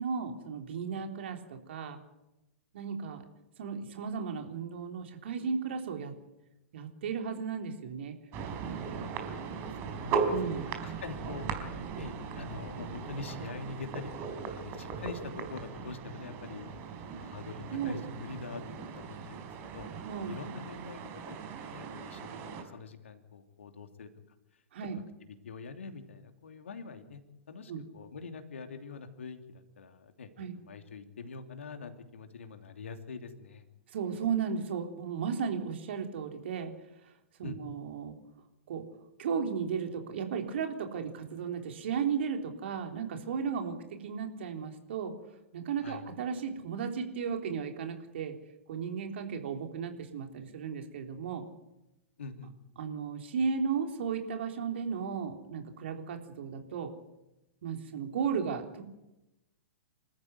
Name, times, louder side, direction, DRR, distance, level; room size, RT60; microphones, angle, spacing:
voice 1, 0.0-2.0 2.7-3.2 3.6-6.2 6.7-8.2 10.3-10.7 17.7-18.0 20.0-20.4 24.7-25.0 27.7-27.8 30.4-30.5 33.9-36.7 37.4-38.2 38.7-38.8 39.2-45.1 45.5-48.4 48.7-51.4 52.8-56.9 57.6-58.8, right 6 dB, 55° right, 5 dB, 3.6 m, -35 dB
sound 1, 8.3-22.6, right 5 dB, 35° right, 4.3 m, -38 dB
voice 2, 9.3-16.7 17.2-18.6 18.9-19.9 20.3-24.1 24.9-25.0 25.4-27.2 27.5-33.6 37.4-37.6 45.8-46.0 52.2-52.5, left 4 dB, 65° left, 7 dB, 2.9 m, -45 dB
27.0 x 14.0 x 9.4 m, 0.94 s
figure-of-eight pair, 105°, 7 cm